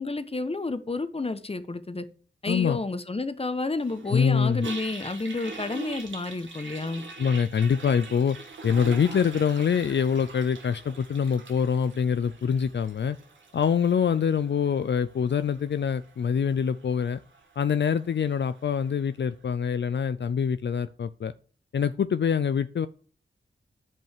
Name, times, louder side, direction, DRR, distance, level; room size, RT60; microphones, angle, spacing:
voice 1, 0.0-2.0 2.4-7.0, left 3 dB, 30° left, 11 dB, 1.2 m, -30 dB
voice 2, 2.5-2.8 4.1-4.7 7.2-8.4 8.6-13.2 13.5-17.2 17.6-21.3 21.7-22.9, left 7 dB, 70° left, 12 dB, 0.6 m, -25 dB
Toilet flush, 3.8-19.0, right 3 dB, 85° right, 2.1 m, -44 dB
11.0 x 5.4 x 6.6 m, 0.41 s
wide cardioid pair, 65°, 19 cm